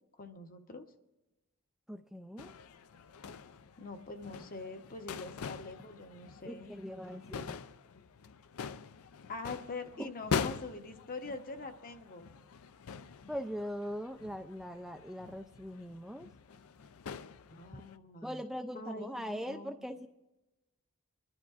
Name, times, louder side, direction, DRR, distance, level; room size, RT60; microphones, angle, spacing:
voice 1, 0.2-0.9 3.8-6.7 9.3-12.3 17.5-18.4 18.7-19.9, left 3 dB, 40° left, 7 dB, 0.9 m, -44 dB
voice 2, 1.9-2.5 6.5-7.6 10.0-10.1 13.3-16.3 17.7-17.8 18.2-20.1, equal, ahead, 6 dB, 0.3 m, -41 dB
sound 1, 2.4-18.0, left 6 dB, 70° left, 0.4 m, -43 dB
23.0 x 11.5 x 2.4 m, 1.0 s
head